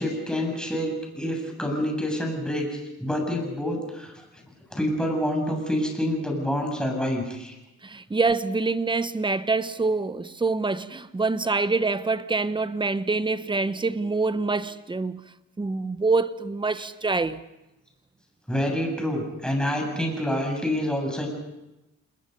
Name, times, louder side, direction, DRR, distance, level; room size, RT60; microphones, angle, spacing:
voice 1, 0.0-4.1 4.7-7.5 18.5-21.3, equal, 5° left, 7.9 m, -27 dB
voice 2, 7.8-15.2 15.6-17.4, right 3 dB, 15° right, 1.1 m, -25 dB
28.5 x 21.0 x 5.5 m
cardioid pair, 90°, 30 cm